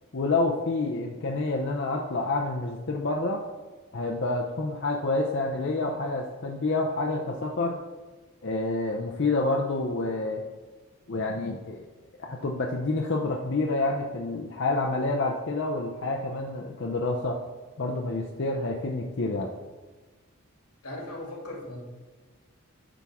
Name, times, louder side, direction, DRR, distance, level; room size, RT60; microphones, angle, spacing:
voice 1, 0.1-3.4 3.9-7.8 8.4-10.4 11.1-11.8 12.2-17.4 17.8-19.5, left 2 dB, 50° left, 0 dB, 0.6 m, -28 dB
voice 2, 20.8-21.8, left 1 dB, 85° left, -1 dB, 2.7 m, -38 dB
9.9 x 6.1 x 3.6 m, 1.3 s
head